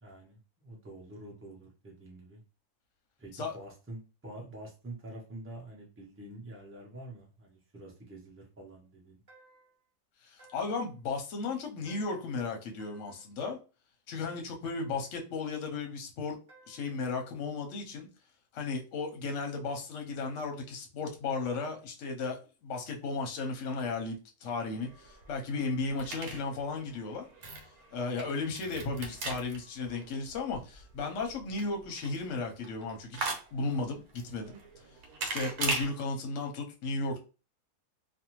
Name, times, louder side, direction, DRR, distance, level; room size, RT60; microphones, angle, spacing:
voice 1, 0.0-2.4 3.2-9.2, right 1 dB, 15° right, 0.4 m, -47 dB
sound 1, 9.3-9.8 10.4-10.9 11.9-12.4 12.8-13.3 14.6-15.2 16.5-17.0, right 2 dB, 35° right, 0.8 m, -59 dB
voice 2, 10.2-13.6 14.1-16.4 16.7-18.1 18.5-27.3 27.9-34.6 35.2-37.2, left 3 dB, 60° left, 0.9 m, -35 dB
sound 2, 24.6-35.9, right 3 dB, 75° right, 1.2 m, -40 dB
2.5 x 2.3 x 2.9 m
omnidirectional pair, 1.7 m